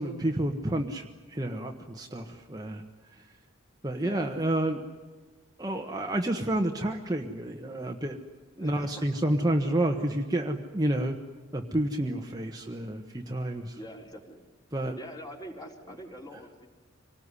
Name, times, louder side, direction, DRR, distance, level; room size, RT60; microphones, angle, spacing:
voice 1, 0.0-2.8 3.8-4.8 5.6-8.2 8.6-11.2 11.5-13.8 14.7-15.0, right 1 dB, 20° right, 3 dB, 1.3 m, -29 dB
voice 2, 3.9-4.3 8.6-9.2 13.7-14.4 14.9-16.7, equal, 20° left, 1 dB, 3.9 m, -44 dB
26.0 x 19.0 x 9.9 m, 1.3 s
head